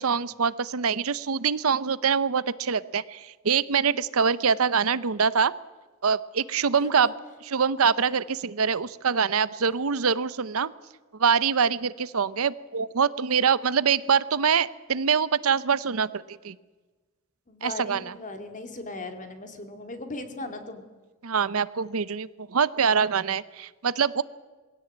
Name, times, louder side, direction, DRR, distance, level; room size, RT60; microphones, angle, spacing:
voice 1, 0.0-5.5 6.0-7.1 7.4-10.7 11.2-16.5 17.6-18.1 21.2-24.2, right 6 dB, 85° right, 17 dB, 0.7 m, -24 dB
voice 2, 6.8-7.1 17.5-20.8, left 2 dB, 35° left, 7 dB, 2.5 m, -38 dB
21.0 x 16.5 x 8.7 m, 1.3 s
head